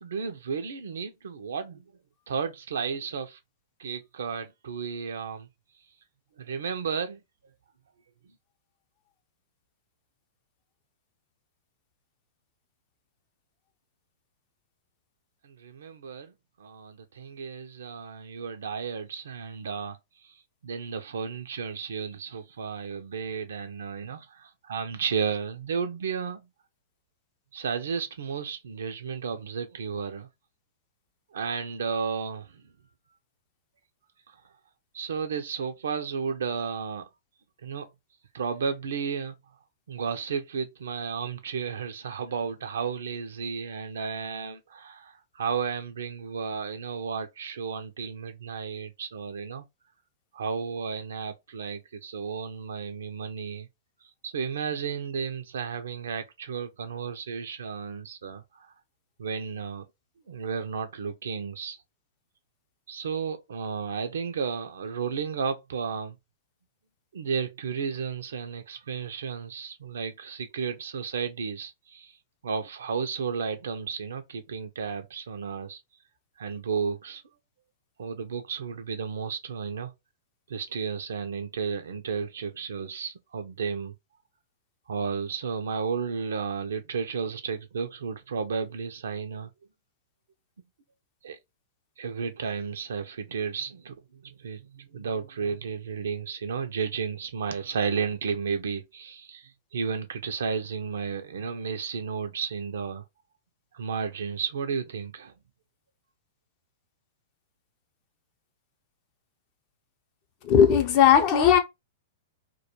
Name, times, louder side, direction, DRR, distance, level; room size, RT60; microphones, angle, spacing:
voice 1, 0.0-1.9 2.3-3.4 3.8-5.5 6.4-7.2 15.4-16.3 16.6-20.0 20.2-26.5 27.5-30.3 31.3-32.6 34.9-37.1 37.6-37.9 38.3-39.4 39.9-49.6 50.3-53.7 54.0-58.7 59.2-59.8 60.3-61.8 62.9-66.2 67.1-72.2 72.4-75.8 76.4-77.2 78.0-79.9 80.5-83.9 84.9-89.5 91.2-91.4 92.0-103.0 103.7-105.3, right 6 dB, 70° right, 0.3 m, -33 dB
voice 2, 110.4-111.6, left 8 dB, 45° left, 0.5 m, -18 dB
2.2 x 2.2 x 2.8 m
hypercardioid pair, 105°, 0 cm